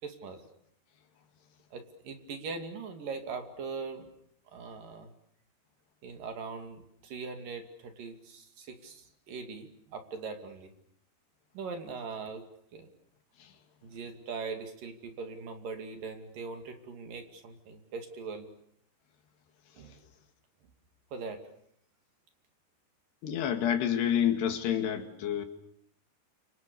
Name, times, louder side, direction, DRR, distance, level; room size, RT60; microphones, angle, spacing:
voice 1, 0.0-0.4 1.7-4.1 4.5-5.1 6.0-10.7 11.5-12.4 12.7-12.9 13.8-18.5 19.8-19.9 21.1-21.4, right 4 dB, 55° right, 3.9 m, -41 dB
voice 2, 23.2-25.5, left 9 dB, 70° left, 4.1 m, -28 dB
29.5 x 26.0 x 6.9 m
omnidirectional pair, 5.0 m